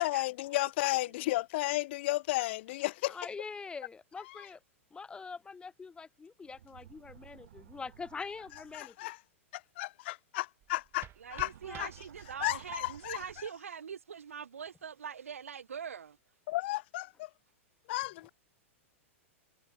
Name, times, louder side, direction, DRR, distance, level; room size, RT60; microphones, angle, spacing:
voice 1, 0.0-3.2 8.7-9.2 9.5-11.5 11.8-11.9 12.4-13.2 16.5-17.3 17.9-18.3, left 18 dB, 55° left, 0.4 m, -33 dB
voice 2, 0.5-1.1 11.2-16.2, right 7 dB, 80° right, 0.5 m, -43 dB
voice 3, 3.1-4.6 4.9-9.0 11.6-11.9, left 5 dB, 15° left, 0.7 m, -44 dB
sound 1, 6.4-8.9 11.0-13.5, right 11 dB, 65° right, 1.9 m, -55 dB
sound 2, 10.6-12.6, right 12 dB, 30° right, 1.9 m, -52 dB
hypercardioid pair, 105°, 7 cm